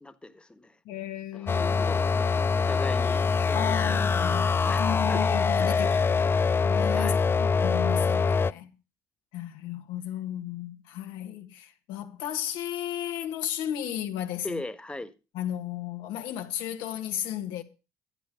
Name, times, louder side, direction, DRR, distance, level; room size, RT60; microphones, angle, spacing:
voice 1, 0.0-0.8 1.3-5.2 5.6-6.4 6.9-7.3 14.4-15.1, left 2 dB, 15° left, 1.5 m, -40 dB
voice 2, 0.8-2.0 3.5-8.7 9.3-14.6 15.3-17.6, left 11 dB, 80° left, 1.7 m, -34 dB
sound 1, 1.5-8.5, left 5 dB, 30° left, 0.5 m, -24 dB
12.0 x 9.1 x 5.0 m
supercardioid pair, 65°, 8 cm